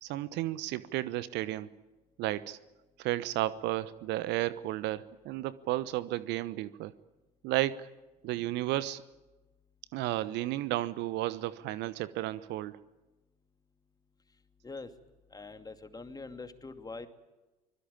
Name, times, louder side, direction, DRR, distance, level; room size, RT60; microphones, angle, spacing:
voice 1, 0.0-1.7 2.2-2.6 3.0-6.9 7.4-7.9 8.2-9.0 9.9-12.8, right 15 dB, 60° right, 17 dB, 1.0 m, -33 dB
voice 2, 15.3-17.1, left 3 dB, 20° left, 8 dB, 2.5 m, -43 dB
24.5 x 21.5 x 8.9 m, 1.1 s
hypercardioid pair, 65°, 21 cm